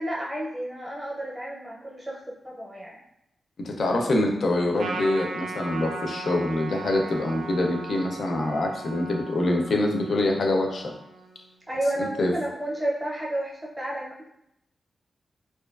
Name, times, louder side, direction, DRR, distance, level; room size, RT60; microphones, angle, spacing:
voice 1, 0.0-3.0 11.7-14.3, right 1 dB, 10° right, -4 dB, 0.6 m, -31 dB
voice 2, 3.6-10.9 12.0-12.3, left 1 dB, 55° left, 2 dB, 0.4 m, -25 dB
Trumpet, 4.8-11.5, right 3 dB, 85° right, 0.3 m, -38 dB
2.5 x 2.2 x 2.3 m, 0.80 s
wide cardioid pair, 150°, 0 cm